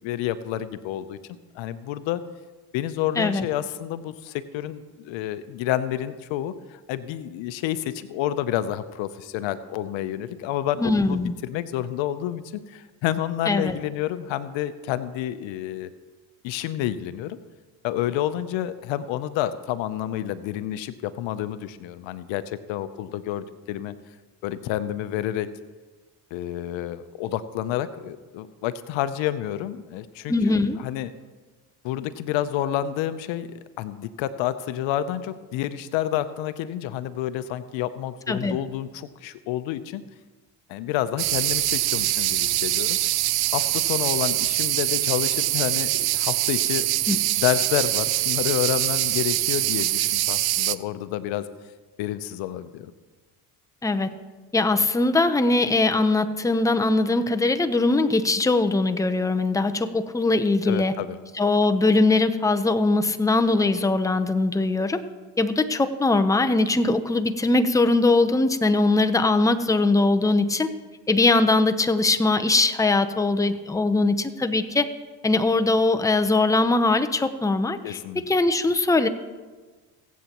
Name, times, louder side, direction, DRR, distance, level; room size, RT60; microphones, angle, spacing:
voice 1, 0.0-2.2 2.7-15.9 16.4-17.4 17.8-23.9 24.4-25.5 26.3-31.1 31.8-33.5 33.8-40.0 40.7-43.0 43.5-51.4 52.0-52.9 60.7-61.2 77.8-78.2, left 12 dB, 70° left, 13 dB, 0.8 m, -29 dB
voice 2, 10.8-11.3 13.5-13.8 30.3-30.8 38.3-38.6 47.1-47.2 53.8-54.1 54.5-60.9 61.3-65.0 65.4-70.7 71.1-74.9 75.2-79.1, left 2 dB, 5° left, 8 dB, 0.8 m, -21 dB
sound 1, 41.2-50.8, right 15 dB, 55° right, 0.6 m, -24 dB
22.5 x 8.4 x 3.0 m, 1.3 s
supercardioid pair, 65°, 48 cm